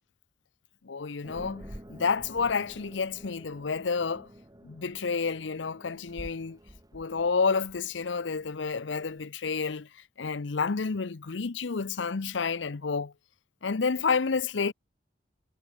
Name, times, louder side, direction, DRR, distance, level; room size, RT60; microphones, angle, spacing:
voice 1, 0.8-4.3 4.6-6.6 6.9-9.9 10.2-13.1 13.6-14.7, left 5 dB, 90° left, 0.7 m, -30 dB
sound 1, 1.2-9.2, equal, 20° right, 2.8 m, -49 dB
head